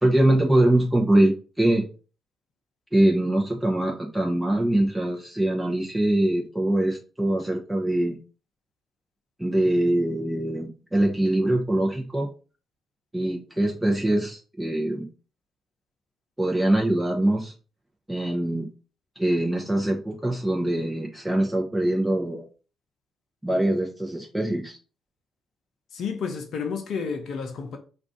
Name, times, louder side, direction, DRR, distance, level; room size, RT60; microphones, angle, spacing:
voice 1, 0.0-1.9 2.9-8.2 9.4-12.3 13.1-15.1 16.4-17.5 18.1-18.7 19.2-22.4 23.4-24.8, right 1 dB, 10° right, 0.8 m, -23 dB
voice 2, 25.9-27.8, left 5 dB, 65° left, 0.5 m, -31 dB
2.5 x 2.4 x 3.5 m
hypercardioid pair, 45°, 0 cm